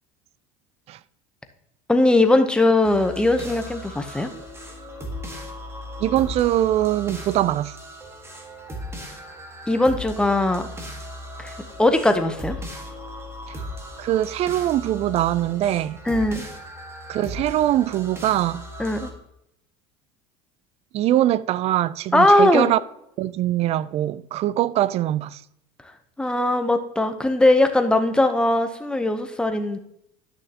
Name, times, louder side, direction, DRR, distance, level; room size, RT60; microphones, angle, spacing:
voice 1, 1.9-4.3 9.7-10.7 11.4-11.5 11.8-12.6 16.1-16.5 18.8-19.1 22.1-22.7 26.2-29.8, left 2 dB, 5° left, 0.8 m, -19 dB
sound 1, 2.8-19.1, equal, 15° right, 1.6 m, -37 dB
voice 2, 6.0-7.7 14.0-16.0 17.1-18.6 20.9-22.8 23.2-25.4, right 13 dB, 40° right, 0.4 m, -22 dB
11.0 x 6.4 x 2.9 m
supercardioid pair, 125°, 16 cm